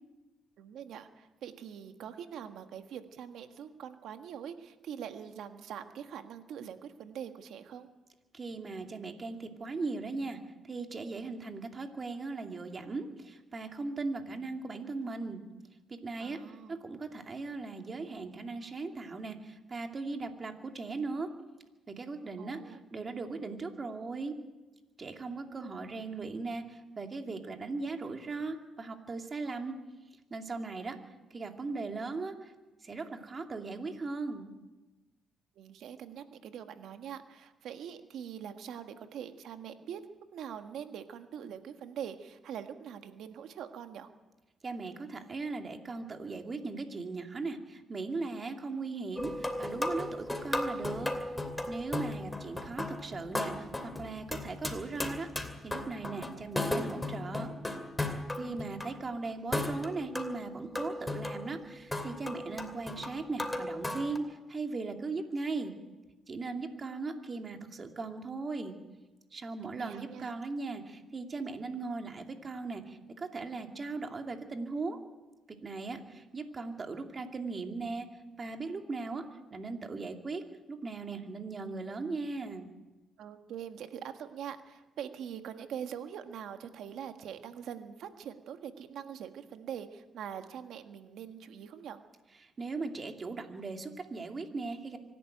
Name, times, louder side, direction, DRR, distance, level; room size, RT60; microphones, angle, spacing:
voice 1, 0.6-7.9 16.2-16.8 22.4-22.8 35.5-40.0 40.3-44.1 58.4-59.0 69.8-70.3 83.2-92.0, right 8 dB, 75° right, 7 dB, 1.6 m, -43 dB
voice 2, 8.3-10.4 10.7-15.4 15.9-16.4 16.7-21.3 21.9-24.4 25.0-29.8 30.3-31.0 31.3-32.5 32.8-34.5 44.6-51.1 51.7-57.5 58.3-65.7 66.3-68.7 69.3-75.0 75.6-78.1 78.4-80.4 80.7-82.7 92.4-95.0, right 3 dB, 35° right, 4 dB, 2.6 m, -38 dB
sound 1, 49.2-58.9 59.5-64.2, left 1 dB, 10° left, 2.7 m, -36 dB
25.0 x 11.5 x 9.1 m, 1.1 s
cardioid pair, 90°, 0 cm